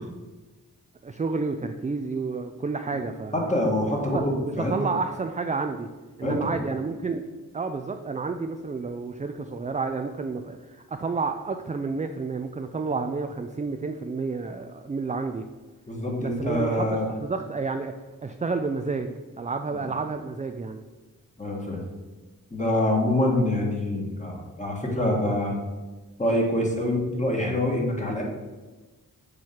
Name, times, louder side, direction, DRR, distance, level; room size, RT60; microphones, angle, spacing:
voice 1, 1.0-3.5 4.1-4.2 4.6-5.9 6.2-7.2 7.5-15.5 16.2-17.9 18.2-20.8, right 4 dB, 20° right, 6 dB, 0.3 m, -30 dB
voice 2, 3.3-4.7 6.2-6.4 15.9-17.1 19.7-19.8 21.4-21.8 22.5-25.6 26.2-28.2, left 1 dB, 20° left, -1 dB, 1.7 m, -25 dB
7.1 x 3.1 x 5.8 m, 1.2 s
wide cardioid pair, 75°, 35 cm